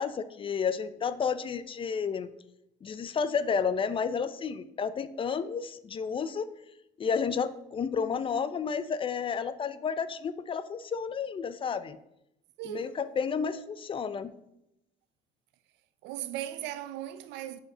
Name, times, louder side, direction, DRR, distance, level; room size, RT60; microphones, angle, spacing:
voice 1, 0.0-2.3 2.8-6.5 7.0-12.0 12.7-14.3, left 6 dB, 30° left, 0.5 m, -31 dB
voice 2, 12.6-13.0 16.0-17.6, right 13 dB, 85° right, 0.5 m, -37 dB
5.0 x 5.0 x 6.0 m
cardioid pair, 120°, 18 cm